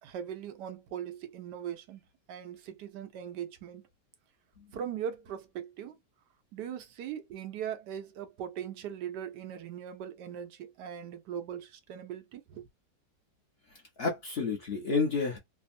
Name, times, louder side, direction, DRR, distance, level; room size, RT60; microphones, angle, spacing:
voice 1, 0.0-2.0 2.3-3.8 4.7-6.0 6.5-12.7, right 9 dB, 85° right, 1.3 m, -40 dB
voice 2, 13.7-15.4, left 4 dB, 55° left, 0.7 m, -30 dB
3.3 x 2.0 x 2.5 m
omnidirectional pair, 1.8 m